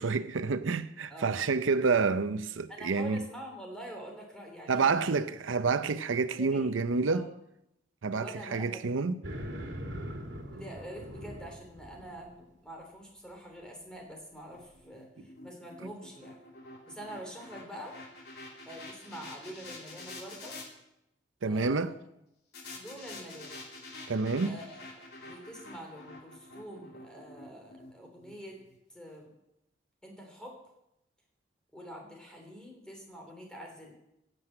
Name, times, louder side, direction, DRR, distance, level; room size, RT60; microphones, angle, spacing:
voice 1, 0.0-3.2 4.7-7.3 8.0-9.2 21.4-21.9 24.1-24.5, right 4 dB, 90° right, 0.6 m, -28 dB
voice 2, 1.1-1.4 2.7-5.2 6.4-6.7 7.1-7.3 8.2-8.8 10.5-16.4 16.9-18.0 18.6-20.6 21.4-21.9 22.7-23.7 24.4-28.6 28.9-29.3 30.0-30.6 31.7-33.9, equal, 5° left, 3.3 m, -46 dB
sound 1, 9.2-12.3, equal, 70° right, 2.6 m, -41 dB
sound 2, 14.5-20.7 22.5-28.8, left 2 dB, 55° left, 2.9 m, -48 dB
16.5 x 7.8 x 7.7 m
head